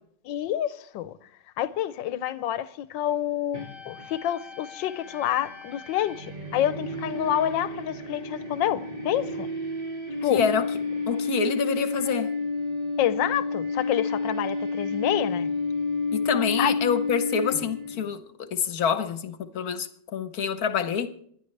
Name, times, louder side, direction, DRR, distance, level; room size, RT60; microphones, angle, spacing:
voice 1, 0.2-1.1 1.6-9.5 10.2-10.4 13.0-15.5 16.6-16.7, left 11 dB, 85° left, 1.4 m, -28 dB
sound 1, 3.5-18.0, left 3 dB, 30° right, 2.1 m, -31 dB
voice 2, 10.3-10.7 11.1-12.3 16.1-21.1, left 6 dB, 60° left, 1.4 m, -27 dB
26.0 x 11.0 x 3.3 m
omnidirectional pair, 2.0 m